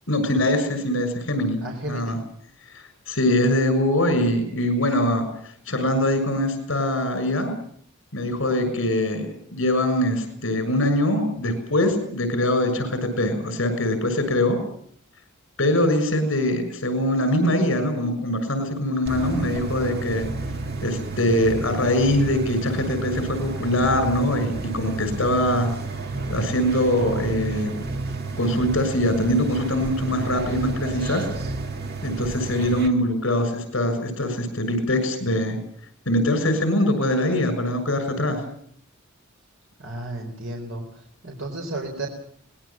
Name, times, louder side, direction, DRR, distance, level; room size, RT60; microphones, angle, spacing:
voice 1, 0.1-1.6 1.9-2.2 2.7-5.3 5.7-7.5 8.1-9.3 9.5-14.6 15.6-20.3 20.8-25.7 26.3-27.8 28.4-31.2 32.0-35.6 36.0-38.4, left 1 dB, 65° left, 9 dB, 6.7 m, -23 dB
voice 2, 1.6-2.2 8.6-8.7 39.8-40.8 41.2-42.1, right 2 dB, 70° right, 1 dB, 4.3 m, -33 dB
sound 1, 19.1-32.9, right 3 dB, 50° right, 1.9 m, -31 dB
24.5 x 20.0 x 7.4 m, 0.62 s
head